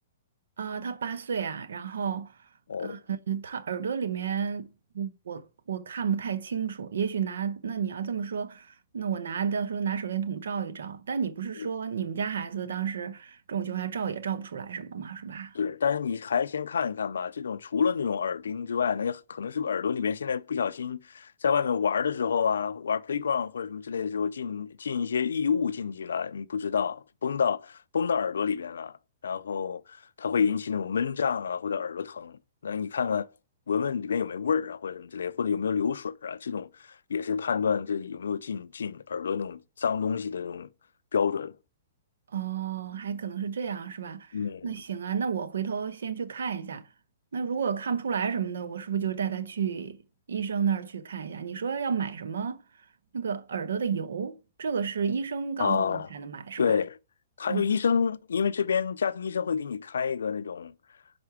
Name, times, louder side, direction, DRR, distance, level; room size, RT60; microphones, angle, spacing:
voice 1, 0.6-2.3 2.8-15.6 42.3-46.9 47.3-50.0 50.3-52.6 53.1-56.6 57.5-57.8, right 7 dB, 80° right, 0.8 m, -31 dB
voice 2, 15.5-29.0 29.2-33.3 33.7-40.7 41.1-41.6 44.3-44.8 55.6-56.1 56.6-57.0 57.4-60.7, left 6 dB, 85° left, 0.3 m, -29 dB
5.7 x 4.3 x 4.8 m
hypercardioid pair, 140°, 0 cm